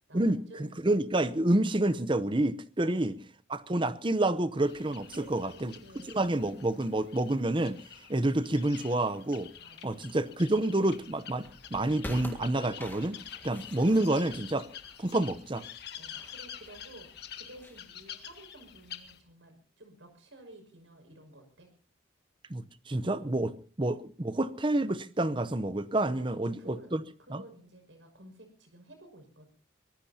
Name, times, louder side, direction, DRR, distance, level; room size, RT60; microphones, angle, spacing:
voice 1, 0.1-0.8 2.8-3.0 5.1-6.2 9.6-10.3 13.5-13.7 15.9-17.1 17.3-21.7 26.2-26.9 27.2-29.5, right 1 dB, 75° right, 6.0 m, -52 dB
voice 2, 0.8-3.1 3.5-5.7 6.1-7.8 8.1-9.5 9.8-14.7 15.0-15.7 22.5-27.0 27.3-27.4, right 1 dB, 25° right, 0.7 m, -28 dB
sound 1, 4.6-19.2, left 9 dB, 55° left, 1.7 m, -48 dB
sound 2, 11.4-17.9, left 1 dB, 10° left, 1.8 m, -48 dB
24.0 x 19.0 x 2.8 m
head